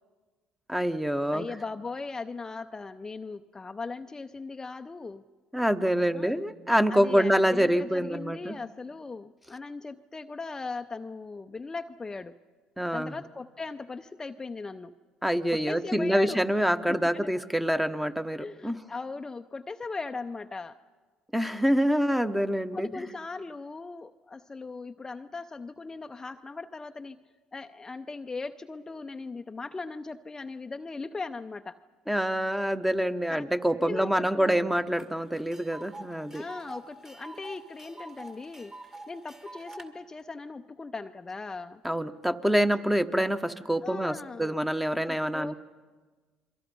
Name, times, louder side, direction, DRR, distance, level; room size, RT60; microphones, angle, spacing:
voice 1, 0.7-1.5 5.5-8.6 12.8-13.1 15.2-18.8 21.3-22.9 32.1-36.4 41.8-45.5, equal, 5° right, 9 dB, 1.2 m, -26 dB
voice 2, 1.3-5.2 6.1-6.4 6.9-12.4 12.9-15.0 15.5-16.4 16.9-17.3 18.4-20.8 22.7-27.2 27.5-31.8 33.3-33.5 33.8-34.7 36.3-41.8 43.8-44.6 45.1-45.5, left 3 dB, 25° left, 6 dB, 0.7 m, -39 dB
Tick, 35.0-35.1 35.3-39.9, right 2 dB, 25° right, 2.4 m, -45 dB
30.0 x 23.0 x 5.5 m, 1.4 s
supercardioid pair, 75°, 2 cm